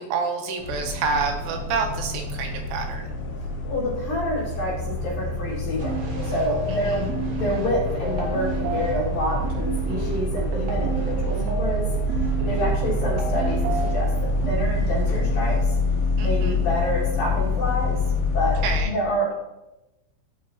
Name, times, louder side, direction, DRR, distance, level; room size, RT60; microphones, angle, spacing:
voice 1, 0.0-3.1 6.7-7.1 16.2-16.6 18.6-19.0, right 5 dB, 85° right, 3 dB, 3.1 m, -28 dB
sound 1, 0.6-18.8, left 2 dB, 75° left, 2.2 m, -26 dB
voice 2, 3.6-11.9 12.4-15.8 16.2-18.0 18.3-19.3, equal, 55° left, -6 dB, 3.0 m, -28 dB
sound 2, 5.8-14.5, right 2 dB, 65° right, 3.1 m, -32 dB
12.5 x 5.5 x 2.8 m, 0.96 s
omnidirectional pair, 5.8 m